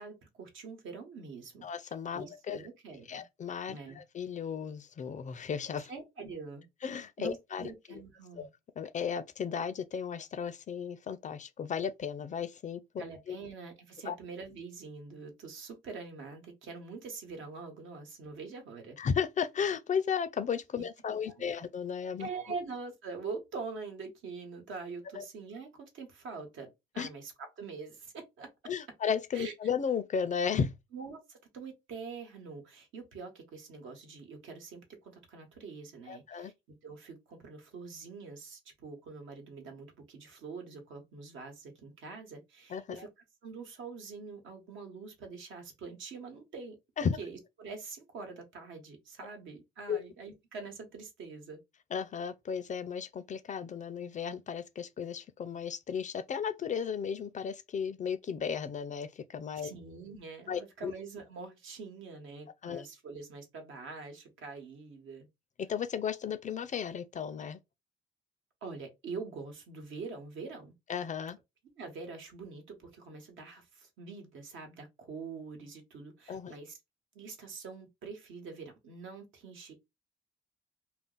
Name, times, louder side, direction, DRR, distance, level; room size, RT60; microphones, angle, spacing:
voice 1, 0.0-3.2 3.7-4.0 5.9-6.6 7.2-8.5 13.0-18.9 20.8-21.5 22.2-28.5 29.3-29.5 30.9-36.5 36.8-43.1 43.4-46.8 47.2-51.6 59.6-65.3 68.6-70.7 71.8-76.8 77.1-79.7, right 4 dB, 75° right, 1.1 m, -44 dB
voice 2, 1.6-2.6 3.1-5.9 6.8-8.0 8.4-8.5 8.8-13.4 14.1-14.2 19.0-22.3 25.2-25.3 27.0-27.1 28.7-30.7 36.1-36.5 42.7-43.1 47.0-47.2 49.9-50.0 51.9-59.7 60.5-60.9 62.6-62.9 65.6-67.6 70.9-71.4 76.3-76.5, left 7 dB, 40° left, 0.4 m, -34 dB
2.5 x 2.0 x 3.7 m
cardioid pair, 90°, 20 cm